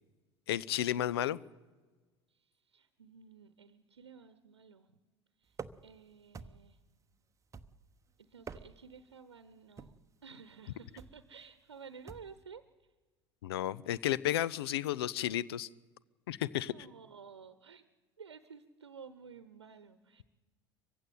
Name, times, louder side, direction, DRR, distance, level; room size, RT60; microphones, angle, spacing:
voice 1, 0.5-1.4 13.4-15.7 16.3-16.7, left 12 dB, 65° left, 21 dB, 0.6 m, -32 dB
voice 2, 2.3-4.9 5.4-5.6 5.8-6.8 8.2-10.0 10.2-12.6 16.4-17.8 18.2-20.2, right 6 dB, 80° right, 13 dB, 1.0 m, -53 dB
sound 1, 5.5-6.0 6.3-6.8 7.5-8.0 8.3-9.0 9.8-10.1 11.0-11.3 12.1-12.4, right 5 dB, 20° right, 0.9 m, -48 dB
24.0 x 15.5 x 9.2 m, 1.3 s
figure-of-eight pair, 70°, 14 cm